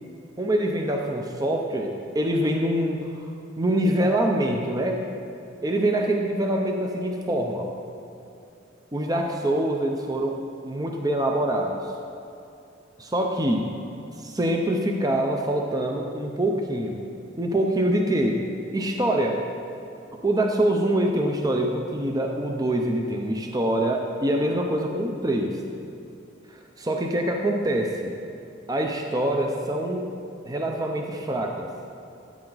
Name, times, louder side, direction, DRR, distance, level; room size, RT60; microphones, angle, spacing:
voice 1, 0.4-3.3 3.6-5.0 5.6-7.6 8.9-11.9 13.0-13.7 14.2-17.0 17.4-18.4 18.7-19.4 20.2-25.6 26.8-28.1 28.7-30.0 30.5-31.7, right 1 dB, 20° right, 2 dB, 0.6 m, -25 dB
13.5 x 8.8 x 4.0 m, 2.6 s
head